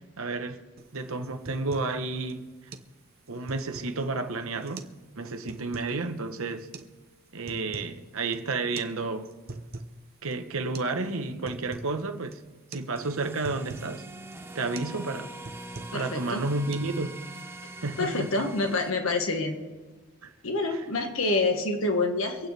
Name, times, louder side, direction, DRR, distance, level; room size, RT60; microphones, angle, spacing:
voice 1, 0.2-0.6 0.9-2.4 3.3-4.8 5.2-6.7 7.3-9.3 10.2-12.4 12.7-14.0 14.5-15.3 15.9-17.2 17.8-18.3 20.2-20.3 20.7-20.8, right 3 dB, 65° right, 1.1 m, -31 dB
sound 1, 0.8-0.9 1.2-2.0 2.3-2.4 2.7-2.9 3.3-4.0 4.6-5.0 5.3-5.9 6.7-6.9 7.3-8.0 8.3-8.4 8.8-8.9 9.2-10.0 10.3-10.4 10.7-11.0 11.2-11.9 12.3-12.5 12.7-12.9 13.2-13.9 14.3-14.5 14.7-15.0 15.3-16.1 16.4-16.8, right 3 dB, 45° right, 0.8 m, -42 dB
sound 2, 13.0-18.9, right 2 dB, 10° right, 0.6 m, -43 dB
voice 2, 15.9-16.5 18.0-19.6 20.4-22.5, left 3 dB, 65° left, 1.5 m, -27 dB
25.5 x 9.1 x 3.3 m
head